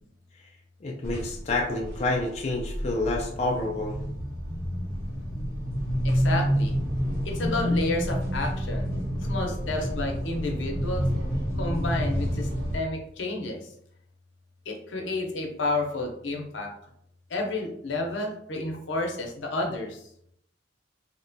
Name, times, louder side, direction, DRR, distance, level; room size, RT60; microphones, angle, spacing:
voice 1, 0.8-4.1, left 2 dB, 35° left, -1 dB, 0.3 m, -29 dB
sound 1, 1.0-12.8, equal, 55° right, 1.1 m, -29 dB
voice 2, 6.0-6.7 7.2-8.9 9.2-11.1 11.5-13.7 14.7-16.7 17.3-20.1, left 2 dB, 75° left, 1 dB, 0.6 m, -31 dB
2.8 x 2.1 x 2.6 m, 0.70 s
head